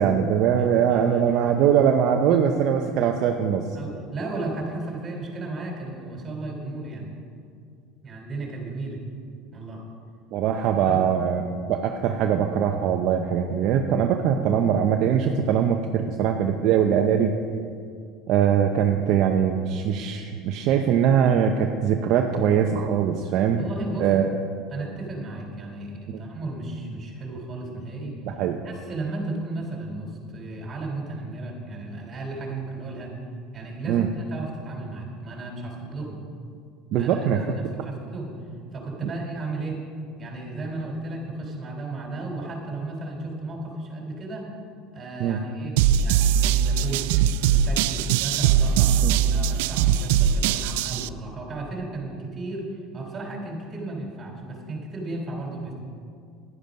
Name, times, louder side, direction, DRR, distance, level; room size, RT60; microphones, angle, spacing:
voice 1, 0.0-3.7 10.3-11.4 11.7-17.3 18.3-23.6 24.0-24.4 28.3-28.6 33.9-34.1 36.9-37.5 39.0-39.1 45.2-45.4 49.0-49.1, right 8 dB, 60° right, 4 dB, 0.7 m, -22 dB
voice 2, 0.6-1.6 3.7-7.1 8.0-9.0 9.5-9.8 10.9-11.0 23.6-24.1 24.7-28.2 28.6-33.1 33.5-36.2 36.9-38.4 38.7-39.8 40.2-44.5 44.9-47.1 47.5-52.7 52.9-55.7, right 2 dB, 30° right, 0 dB, 3.5 m, -34 dB
sound 1, 45.8-51.1, right 9 dB, 80° right, 0.3 m, -21 dB
11.0 x 10.0 x 5.3 m, 2.3 s
supercardioid pair, 110°, 0 cm